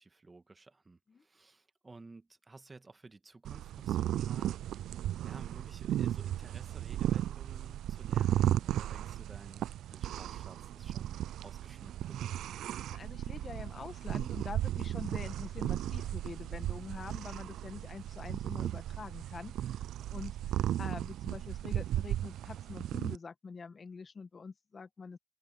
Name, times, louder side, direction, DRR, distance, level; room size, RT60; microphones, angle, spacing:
voice 1, 0.0-4.9 5.2-12.4, right 3 dB, 25° right, 1.9 m, -54 dB
sound 1, 3.4-23.1, right 12 dB, 80° right, 0.4 m, -35 dB
voice 2, 12.8-19.8 20.1-20.4 20.8-25.2, left 5 dB, 40° left, 1.7 m, -45 dB
cardioid pair, 85°, 0 cm